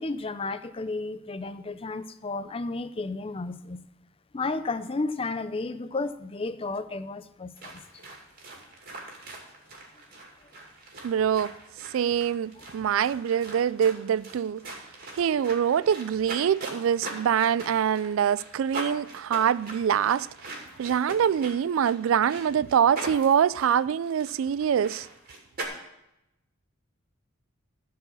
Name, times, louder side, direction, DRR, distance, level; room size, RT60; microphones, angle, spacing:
voice 1, 0.0-3.8 4.3-7.8, left 3 dB, 25° left, 0.5 m, -32 dB
sound 1, 7.6-25.6, right 2 dB, 45° right, 2.5 m, -42 dB
voice 2, 11.0-11.5 11.9-14.6 15.2-20.3 20.8-25.1, right 8 dB, 70° right, 0.3 m, -24 dB
14.5 x 4.8 x 7.0 m
head